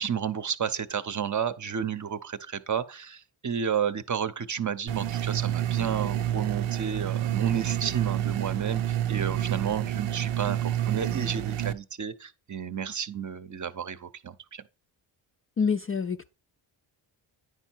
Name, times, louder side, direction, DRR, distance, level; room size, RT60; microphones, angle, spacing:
voice 1, 0.0-14.6, right 8 dB, 35° right, 0.7 m, -31 dB
sound 1, 4.9-11.7, right 11 dB, 85° right, 0.7 m, -29 dB
voice 2, 15.6-16.3, left 5 dB, 30° left, 0.4 m, -27 dB
9.7 x 4.5 x 4.5 m
cardioid pair, 65°, 49 cm